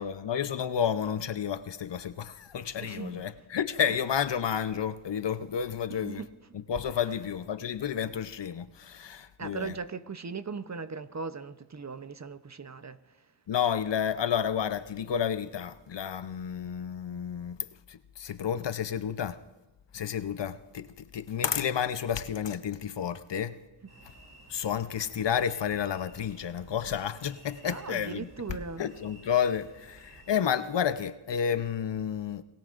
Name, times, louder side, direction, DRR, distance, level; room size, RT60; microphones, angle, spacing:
voice 1, 0.0-6.2 6.7-9.8 13.5-17.6 17.9-19.4 19.9-23.6 24.5-28.3 28.8-32.4, left 8 dB, 60° left, 0.8 m, -31 dB
voice 2, 2.8-3.2 5.9-6.3 9.4-13.2 27.6-28.9, right 5 dB, 35° right, 0.8 m, -39 dB
sound 1, 23.9-30.4, right 1 dB, 50° right, 6.2 m, -54 dB
29.5 x 18.5 x 2.5 m
cardioid pair, 50°, 49 cm